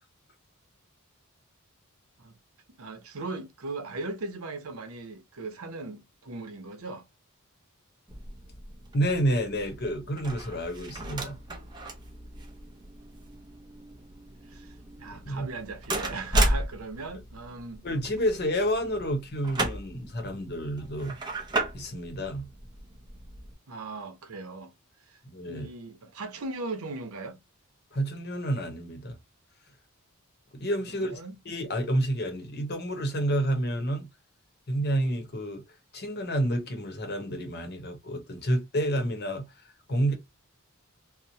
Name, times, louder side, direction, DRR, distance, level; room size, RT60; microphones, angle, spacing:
voice 1, 2.8-7.1 14.5-17.8 23.7-24.7 25.1-25.2 25.5-27.4 31.0-31.3, right 3 dB, 80° right, 0.7 m, -38 dB
sound 1, 8.1-23.5, right 1 dB, 20° right, 0.6 m, -34 dB
voice 2, 8.9-11.4 15.2-15.5 17.8-21.1 21.7-22.5 25.2-25.7 27.9-29.2 30.5-31.2 31.4-34.1 34.7-35.6 35.9-39.5 39.9-40.1, right 1 dB, 50° left, 0.8 m, -29 dB
2.9 x 2.0 x 2.6 m
head